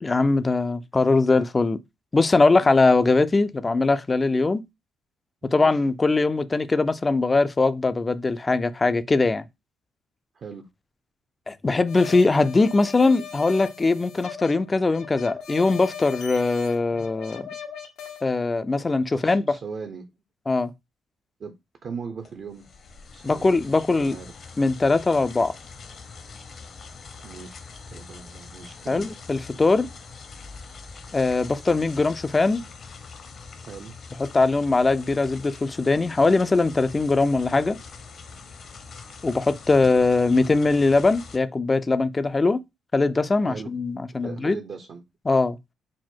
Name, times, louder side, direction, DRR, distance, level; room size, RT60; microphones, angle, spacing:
voice 1, 0.0-1.8 2.1-4.6 5.5-9.4 11.5-17.5 18.2-19.4 20.5-20.7 23.2-24.2 24.6-25.5 28.9-29.9 31.1-32.7 34.3-37.8 39.2-42.6 42.9-44.6 45.3-45.6, left 3 dB, 25° left, 0.4 m, -21 dB
voice 2, 5.4-5.8 10.3-10.7 19.1-20.1 21.4-21.5 21.8-22.6 23.1-23.5 24.0-24.3 27.2-27.6 27.9-29.1 33.7-33.9 39.7-40.1 43.4-43.7 44.2-45.0, right 5 dB, 55° right, 0.6 m, -38 dB
sound 1, 11.9-18.2, left 7 dB, 90° left, 0.8 m, -39 dB
sound 2, 22.2-41.4, left 4 dB, 55° left, 0.8 m, -43 dB
4.2 x 2.1 x 4.4 m
cardioid pair, 90°, 0 cm